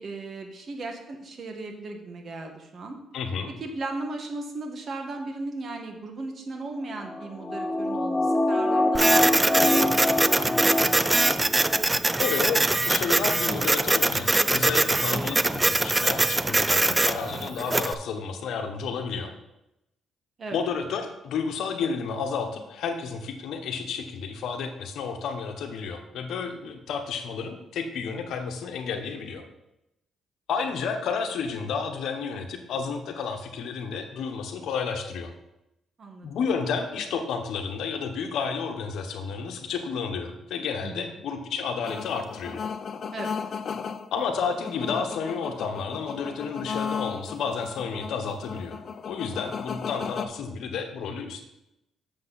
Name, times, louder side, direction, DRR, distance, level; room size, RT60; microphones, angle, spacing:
voice 1, 0.0-3.0 3.6-11.1 20.4-20.6 36.0-36.3 40.8-41.2 43.1-43.3, right 2 dB, 45° right, 4 dB, 1.5 m, -37 dB
voice 2, 3.1-3.5 12.2-19.3 20.5-29.4 30.5-35.3 36.2-42.6 44.1-48.8 49.0-51.4, left 5 dB, 75° left, 6 dB, 1.0 m, -31 dB
sound 1, 7.0-11.8 12.1-12.2, left 1 dB, 15° left, 1.1 m, -25 dB
Printer, 8.9-17.9, right 2 dB, 15° right, 0.3 m, -23 dB
sound 2, 41.8-50.3, left 6 dB, 55° left, 0.5 m, -35 dB
7.7 x 6.9 x 4.1 m, 0.88 s
cardioid pair, 90°, 0 cm